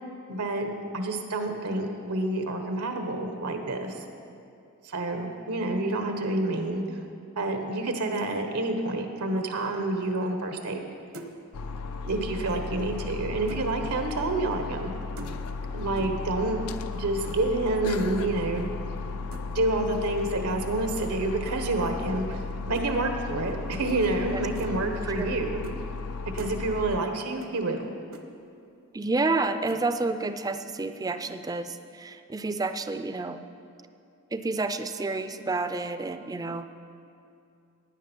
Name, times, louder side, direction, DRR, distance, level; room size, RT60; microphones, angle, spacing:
voice 1, 0.3-4.0 4.8-6.8 7.4-10.8 12.0-14.9 15.7-18.7 19.5-22.4 22.7-25.6 26.3-27.9, right 2 dB, 85° right, 5 dB, 1.2 m, -28 dB
sound 1, 10.6-10.9 11.1-11.5 12.7-13.7 15.2-15.6 16.0-16.3 17.2-17.4 18.0-18.2 19.3-19.6 21.4-21.6 22.7-22.9 24.0-24.2 24.6-24.7 25.6-25.8 26.1-26.6 27.4-27.5 27.8-27.9 28.1-28.3 29.7-29.9, right 2 dB, 65° right, 0.9 m, -44 dB
sound 2, 11.5-27.0, left 4 dB, 80° left, 0.5 m, -35 dB
voice 2, 28.9-33.4 34.3-36.7, right 3 dB, 15° right, 10 dB, 0.4 m, -29 dB
15.5 x 9.8 x 4.5 m, 2.5 s
head